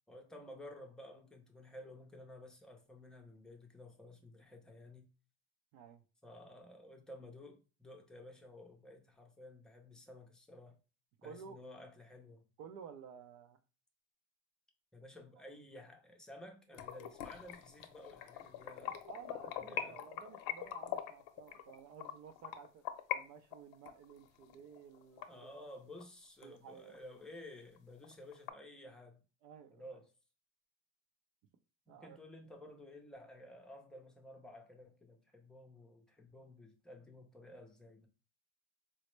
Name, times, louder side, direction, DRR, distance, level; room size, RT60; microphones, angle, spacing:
voice 1, 0.1-5.1 6.2-10.8 11.2-12.4 14.9-19.0 19.6-20.0 25.3-29.2 29.7-30.1 31.9-38.1, left 1 dB, ahead, 0.5 m, -53 dB
voice 2, 11.2-11.6 12.6-13.6 19.1-22.8 23.1-25.5 26.4-27.0 29.4-29.9 31.9-32.2, right 7 dB, 70° right, 0.5 m, -53 dB
sound 1, 16.7-23.2 23.5-26.0 26.4-26.5 26.9-27.0 27.4-27.5 27.8-28.5, left 10 dB, 70° left, 0.6 m, -43 dB
4.2 x 2.0 x 3.1 m
cardioid pair, 135°, 35 cm